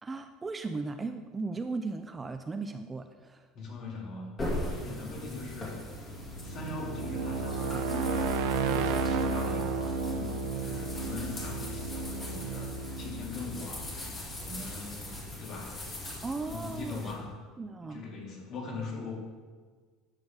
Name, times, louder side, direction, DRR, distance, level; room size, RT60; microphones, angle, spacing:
voice 1, 0.0-3.5 16.2-17.1 17.6-18.0, right 3 dB, 15° right, 7 dB, 0.4 m, -37 dB
voice 2, 3.5-5.8 6.4-13.9 14.4-15.9 16.5-17.4 17.8-19.2, left 3 dB, 45° left, -1 dB, 2.4 m, -41 dB
sound 1, 4.4-17.1, left 1 dB, 25° left, 2.2 m, -40 dB
sound 2, 6.0-14.8, right 4 dB, 75° right, 0.7 m, -33 dB
12.0 x 7.3 x 3.5 m, 1.5 s
cardioid pair, 155°, 0 cm